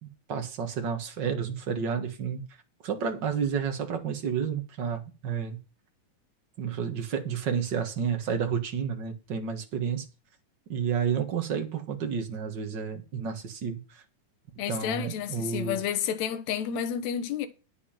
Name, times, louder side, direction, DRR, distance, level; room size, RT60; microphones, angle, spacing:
voice 1, 0.0-2.4 2.8-5.6 6.6-10.1 10.7-14.0 14.7-15.8, right 7 dB, 40° right, 1.8 m, -31 dB
voice 2, 14.6-17.5, left 8 dB, 65° left, 2.3 m, -30 dB
9.8 x 7.0 x 5.9 m
omnidirectional pair, 3.8 m